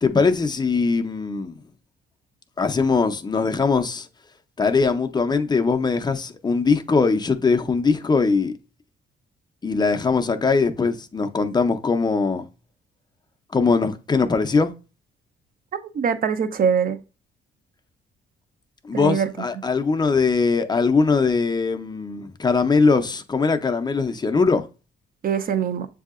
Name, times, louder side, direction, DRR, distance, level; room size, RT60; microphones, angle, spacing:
voice 1, 0.0-1.5 2.6-4.1 4.6-8.5 9.6-12.4 13.5-14.7 18.8-24.7, left 4 dB, 20° left, 0.5 m, -21 dB
voice 2, 15.7-17.0 18.9-19.3 25.2-25.9, right 7 dB, 45° right, 0.6 m, -23 dB
7.2 x 2.7 x 2.4 m
cardioid pair, 90°, 20 cm